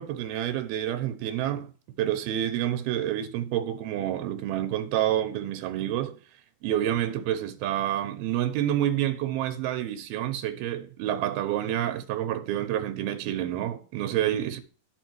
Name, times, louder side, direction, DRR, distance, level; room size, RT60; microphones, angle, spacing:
voice 1, 0.0-1.7 2.0-6.2 6.6-14.6, right 11 dB, 90° right, 2.9 m, -28 dB
11.5 x 5.5 x 4.6 m
omnidirectional pair, 4.3 m